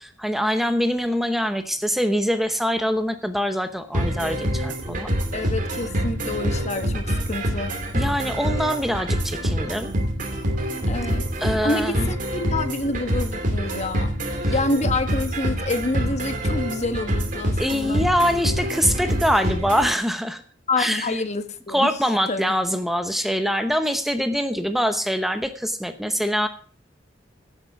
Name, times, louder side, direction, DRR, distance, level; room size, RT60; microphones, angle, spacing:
voice 1, 0.0-5.1 7.9-10.0 11.4-12.1 14.5-14.6 17.6-20.4 20.8-21.1 21.7-26.5, equal, ahead, 8 dB, 0.9 m, -24 dB
sound 1, 3.9-19.9, equal, 45° right, 2.7 m, -26 dB
voice 2, 5.3-7.7 10.9-11.2 11.6-14.2 14.5-18.1 20.7-21.9 22.3-22.8, left 2 dB, 40° left, 9 dB, 1.2 m, -27 dB
16.5 x 8.3 x 4.8 m, 0.44 s
head